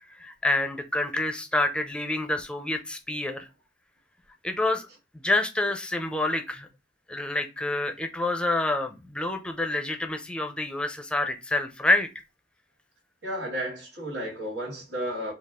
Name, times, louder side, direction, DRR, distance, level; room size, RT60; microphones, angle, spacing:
voice 1, 0.2-3.5 4.4-4.9 5.1-6.7 7.1-12.1, left 2 dB, 5° left, 0.5 m, -27 dB
voice 2, 13.2-15.3, equal, 85° right, 1.8 m, -33 dB
4.1 x 2.4 x 3.6 m
head